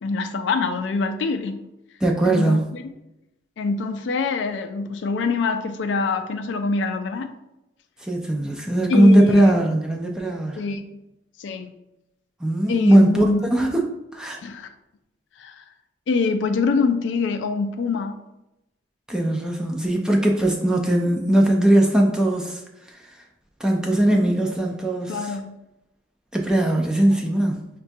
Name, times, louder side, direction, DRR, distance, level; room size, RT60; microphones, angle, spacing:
voice 1, 0.0-1.6 2.2-2.8 3.6-7.3 8.9-9.5 10.5-10.8 11.4-11.7 12.7-13.4 14.4-14.7 15.4-15.6 16.1-18.2 25.1-25.6, left 4 dB, 85° left, 0.3 m, -25 dB
voice 2, 2.0-2.6 8.0-10.6 12.4-13.8 14.1-14.4 19.1-22.6 23.6-25.3 26.3-27.6, right 1 dB, 5° right, 0.4 m, -19 dB
4.8 x 2.2 x 2.6 m
head